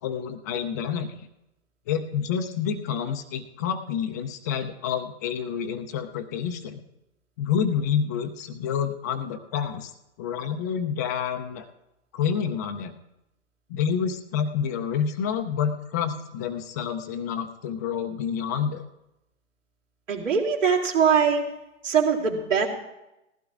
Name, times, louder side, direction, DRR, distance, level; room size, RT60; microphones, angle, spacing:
voice 1, 0.0-1.3 1.9-6.8 7.4-9.9 10.2-11.7 12.1-12.9 13.7-18.8, left 7 dB, 15° left, 7 dB, 0.3 m, -28 dB
voice 2, 20.1-21.4 21.8-22.7, right 6 dB, 70° right, 0 dB, 2.9 m, -22 dB
19.5 x 15.0 x 2.4 m, 0.90 s
hypercardioid pair, 125°, 38 cm